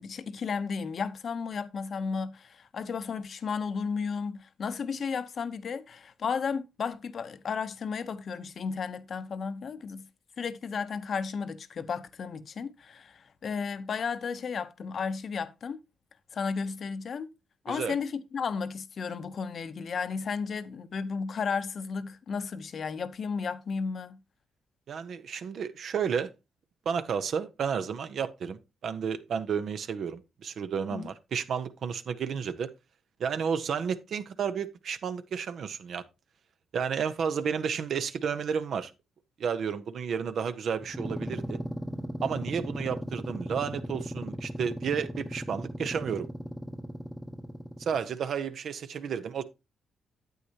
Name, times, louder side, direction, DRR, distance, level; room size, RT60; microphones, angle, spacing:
voice 1, 0.0-10.1 10.4-15.8 16.3-17.3 17.6-24.2 30.9-31.1, left 5 dB, 60° left, 0.7 m, -33 dB
voice 2, 24.9-26.3 26.8-32.7 33.2-36.0 36.7-38.9 39.4-41.6 42.2-46.3 47.8-49.4, right 7 dB, 65° right, 0.8 m, -32 dB
sound 1, 40.8-48.2, equal, 5° left, 0.8 m, -37 dB
9.3 x 8.2 x 2.8 m
supercardioid pair, 60°, 0 cm